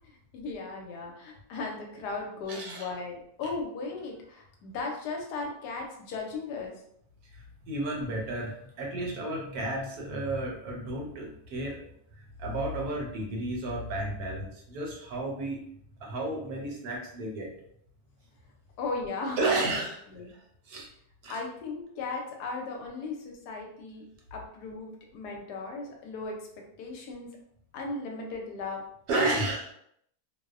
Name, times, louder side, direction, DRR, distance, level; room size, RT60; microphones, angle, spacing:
voice 1, 0.0-6.7 18.8-19.8 20.1-20.2 21.3-24.0 24.3-26.4 26.8-27.3 27.7-28.8 29.1-29.5, left 3 dB, 80° left, 1 dB, 1.1 m, -36 dB
voice 2, 2.5-2.9 7.3-11.9 12.4-15.6 16.0-17.5 19.4-20.0 20.3-20.4 20.6-20.9 21.2-21.4 29.1-29.7, right 2 dB, 75° right, -1 dB, 1.1 m, -32 dB
2.7 x 2.0 x 2.4 m, 0.70 s
omnidirectional pair, 1.7 m